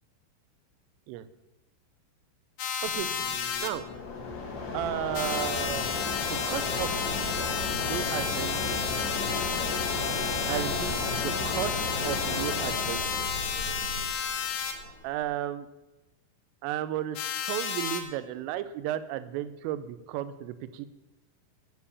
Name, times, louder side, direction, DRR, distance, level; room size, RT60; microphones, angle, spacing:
sound 1, 2.6-3.7 5.2-14.7 17.2-18.0, left 7 dB, 75° left, 3.5 m, -32 dB
Mechanisms, 2.8-15.2, left 3 dB, 55° left, 2.6 m, -35 dB
voice 1, 4.7-5.9 6.2-7.1 7.8-8.8 10.5-11.8 12.0-13.3 15.0-15.7 16.6-20.9, right 12 dB, 85° right, 13 dB, 3.2 m, -34 dB
sound 2, 6.7-14.1, right 2 dB, 65° right, 3.5 m, -41 dB
10.5 x 7.2 x 8.4 m, 1.0 s
omnidirectional pair, 5.9 m